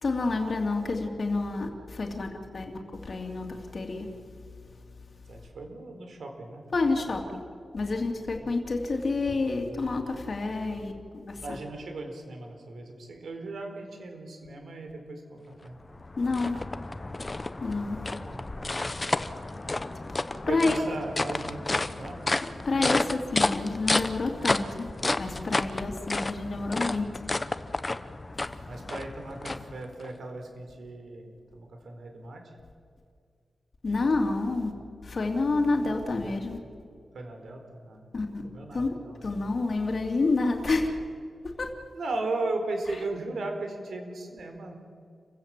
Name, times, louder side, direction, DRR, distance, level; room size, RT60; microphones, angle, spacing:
voice 1, 0.0-4.1 6.7-7.4 7.7-11.6 16.2-16.6 17.6-18.1 20.5-20.8 22.6-24.9 25.2-27.0 33.8-34.7 35.0-36.6 38.1-38.4 38.7-38.9 39.2-40.9 41.4-41.7, left 3 dB, 45° left, 2 dB, 2.7 m, -29 dB
voice 2, 5.3-6.6 8.3-8.5 11.4-15.8 18.1-18.9 20.5-22.3 28.6-32.5 37.1-38.1 38.4-39.3 41.9-44.8, right 2 dB, 75° right, 4 dB, 4.2 m, -37 dB
sound 1, 15.6-30.1, left 2 dB, 25° left, 0.9 m, -31 dB
29.0 x 16.0 x 7.6 m, 2.3 s
wide cardioid pair, 100°, 0 cm